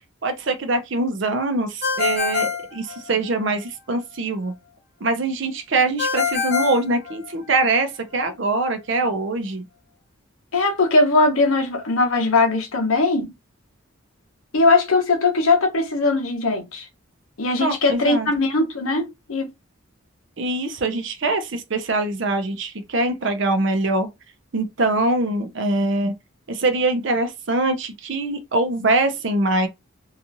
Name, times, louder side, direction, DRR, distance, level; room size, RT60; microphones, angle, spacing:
voice 1, 0.2-4.5 5.0-9.6 17.6-18.3 20.4-24.1 24.5-26.1 26.5-29.7, right 2 dB, 60° right, 0.6 m, -23 dB
Ringtone, 1.8-3.5 6.0-7.7, left 6 dB, 50° left, 0.9 m, -25 dB
voice 2, 10.5-13.3 14.5-16.9 17.4-19.5, left 3 dB, 80° left, 0.9 m, -20 dB
2.8 x 2.4 x 2.5 m
head